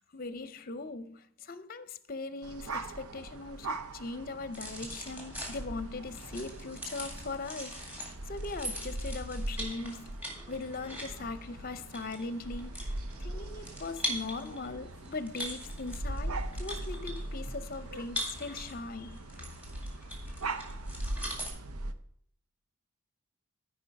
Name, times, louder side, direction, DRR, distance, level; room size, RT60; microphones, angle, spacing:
voice 1, 0.1-10.2 10.5-12.8 13.2-19.2, left 3 dB, 40° left, 0.6 m, -40 dB
sound 1, 2.4-21.9, right 2 dB, 80° right, 0.7 m, -41 dB
sound 2, 4.5-21.5, equal, 5° right, 2.2 m, -42 dB
13.5 x 5.2 x 5.3 m
head